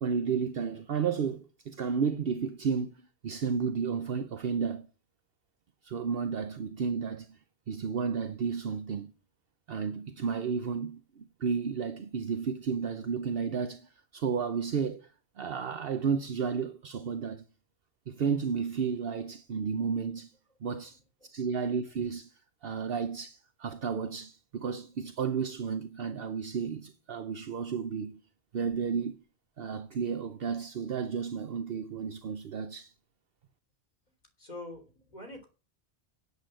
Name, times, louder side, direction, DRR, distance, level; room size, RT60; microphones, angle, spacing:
voice 1, 0.0-2.9 3.2-4.9 5.8-7.4 7.7-9.1 9.7-15.1 15.4-17.4 18.1-20.3 20.6-28.2 28.5-29.2 29.6-32.9, right 6 dB, 65° right, 1.0 m, -32 dB
voice 2, 34.4-35.5, left 2 dB, 45° left, 3.3 m, -44 dB
8.4 x 8.3 x 7.6 m
omnidirectional pair, 1.1 m